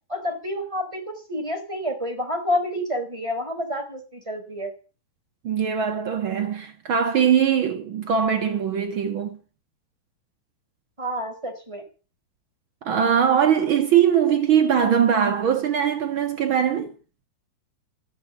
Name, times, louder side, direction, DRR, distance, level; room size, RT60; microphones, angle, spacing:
voice 1, 0.1-4.7 11.0-11.8, left 1 dB, 10° right, 3.7 m, -29 dB
voice 2, 5.4-9.4 12.8-16.9, right 8 dB, 75° right, 1.1 m, -21 dB
14.0 x 12.0 x 7.2 m
omnidirectional pair, 4.6 m